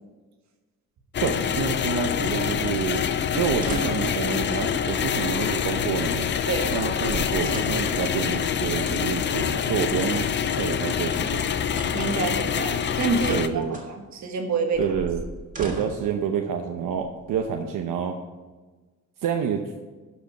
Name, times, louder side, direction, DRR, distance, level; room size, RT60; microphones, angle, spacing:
sound 1, 1.1-13.5, left 8 dB, 35° left, 0.4 m, -26 dB
voice 1, 1.2-3.0 3.3-6.3 6.7-11.5 13.3-13.8 14.8-15.2 15.6-18.2 19.2-19.8, right 7 dB, 85° right, 4 dB, 0.8 m, -28 dB
sound 2, 3.4-4.2 5.1-6.1 6.8-6.9 7.0-8.0 8.6-9.3 10.5-11.4 11.7-12.2 13.1-13.9 14.7-16.1 16.9-17.6, right 2 dB, 25° right, 1.7 m, -38 dB
voice 2, 11.9-14.8, right 4 dB, 60° right, 4 dB, 1.5 m, -27 dB
12.0 x 5.3 x 5.9 m, 1.3 s
wide cardioid pair, 170°, 32 cm